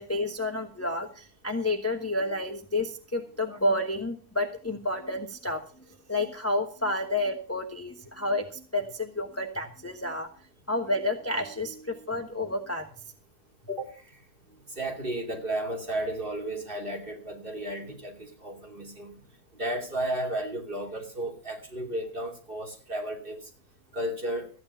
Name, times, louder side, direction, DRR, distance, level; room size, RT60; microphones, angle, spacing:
voice 1, 0.0-5.6 6.1-10.3 10.7-12.8, left 1 dB, 10° left, 5 dB, 1.1 m, -30 dB
voice 2, 14.8-19.1 19.6-23.4 23.9-24.5, right 1 dB, 35° right, 2 dB, 3.1 m, -33 dB
14.0 x 9.8 x 5.6 m, 0.38 s
omnidirectional pair, 1.6 m